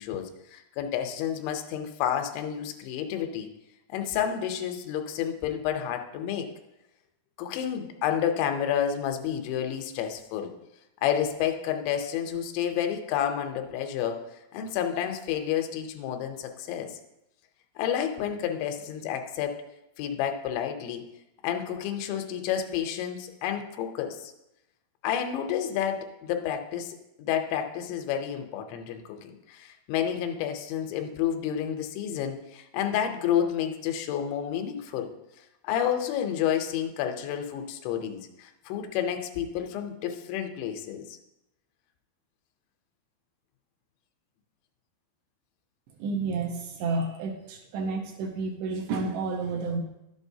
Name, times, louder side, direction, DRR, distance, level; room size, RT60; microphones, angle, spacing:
voice 1, 0.0-3.5 3.9-6.5 7.4-10.5 11.0-14.2 14.5-17.0 17.8-19.6 20.0-21.0 21.4-24.3 25.0-35.1 35.6-41.2, left 9 dB, 90° left, 5 dB, 3.1 m, -30 dB
voice 2, 46.0-49.8, right 3 dB, 80° right, 1 dB, 3.0 m, -30 dB
11.5 x 7.4 x 2.7 m, 0.88 s
omnidirectional pair, 5.1 m